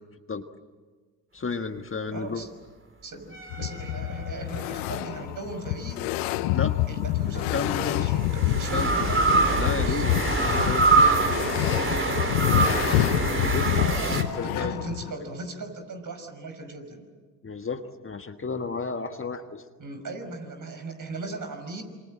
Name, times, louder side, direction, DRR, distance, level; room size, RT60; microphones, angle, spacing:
voice 1, 1.3-2.4 6.5-6.8 7.3-8.0 8.7-9.1 9.6-11.2 13.1-13.7 14.1-14.7 17.4-19.6, left 4 dB, 30° left, 7 dB, 1.6 m, -33 dB
voice 2, 2.1-2.5 3.0-6.0 6.9-10.1 13.7-17.1 19.8-21.8, right 3 dB, 45° right, 6 dB, 5.7 m, -38 dB
sound 1, 3.3-4.8 6.7-14.2, right 3 dB, 25° right, 3.9 m, -25 dB
sound 2, 3.5-15.1, left 16 dB, 80° left, 0.9 m, -27 dB
27.0 x 25.5 x 7.7 m, 1.4 s
hypercardioid pair, 55°, 45 cm